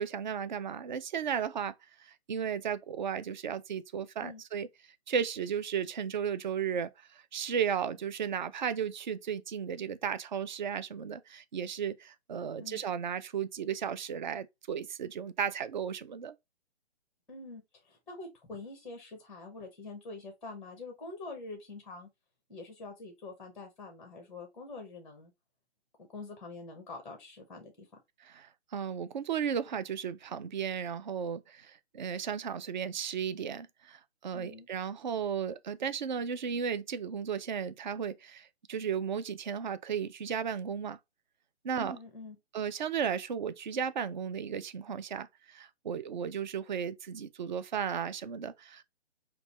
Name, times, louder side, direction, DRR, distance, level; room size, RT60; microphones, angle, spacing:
voice 1, 0.0-1.7 2.0-4.7 5.1-6.9 7.3-16.3 28.2-41.0 41.6-42.0 42.5-48.8, right 7 dB, 45° right, 0.4 m, -34 dB
voice 2, 17.3-22.1 22.5-25.3 26.0-27.9 34.3-34.7 41.7-42.4, left 3 dB, 5° left, 0.6 m, -45 dB
5.1 x 2.2 x 2.9 m
hypercardioid pair, 150°, 33 cm